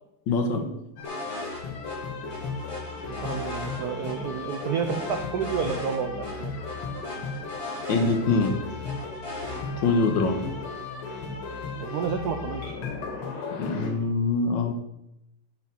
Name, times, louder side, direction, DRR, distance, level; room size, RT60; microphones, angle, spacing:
voice 1, 0.3-0.7 7.9-8.6 9.8-10.4 13.6-14.7, left 3 dB, 65° left, 5 dB, 1.5 m, -24 dB
sound 1, 1.0-13.9, left 4 dB, 90° left, 2.2 m, -35 dB
sound 2, 1.0-1.6 1.9-2.0 2.3-4.1 4.5-6.0 6.2-6.3 6.7-8.5 8.8-9.6, left 1 dB, 20° left, 3.3 m, -37 dB
voice 2, 3.1-6.7 10.3-10.4 11.8-12.7, right 7 dB, 80° right, 7 dB, 0.8 m, -30 dB
10.5 x 4.2 x 5.7 m, 0.85 s
omnidirectional pair, 2.4 m